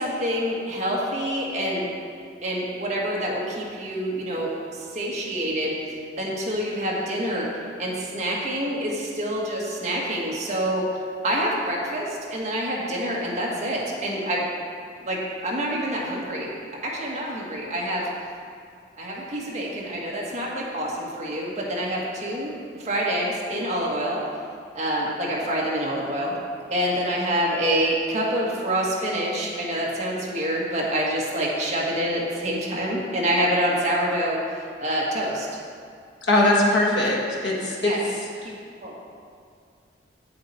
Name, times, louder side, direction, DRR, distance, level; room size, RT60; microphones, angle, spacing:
voice 1, 0.0-1.9 2.4-14.4 15.0-16.5 16.8-18.1 19.0-24.2 24.7-26.3 26.7-35.5 37.8-38.0 38.4-38.5 38.8-38.9, equal, 40° right, -4 dB, 1.6 m, -27 dB
voice 2, 36.2-37.9, left 1 dB, 80° left, -3 dB, 1.7 m, -21 dB
8.2 x 7.6 x 4.3 m, 2.2 s
head